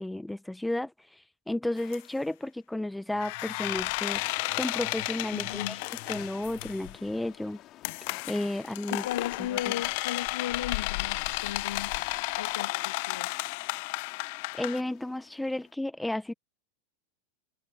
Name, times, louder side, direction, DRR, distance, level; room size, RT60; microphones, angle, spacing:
voice 1, 0.0-5.8 6.1-7.6 8.3-9.0 9.4-9.7 14.6-16.3, left 1 dB, 5° left, 1.0 m, -33 dB
sound 1, 1.8-2.0 3.2-7.0 7.8-14.8, left 26 dB, 60° left, 0.8 m, -33 dB
sound 2, 4.0-15.7, left 14 dB, 40° left, 3.1 m, -52 dB
voice 2, 5.3-5.8 8.9-11.9 12.4-13.3, left 12 dB, 75° left, 1.9 m, -36 dB
hypercardioid pair, 100°, 0 cm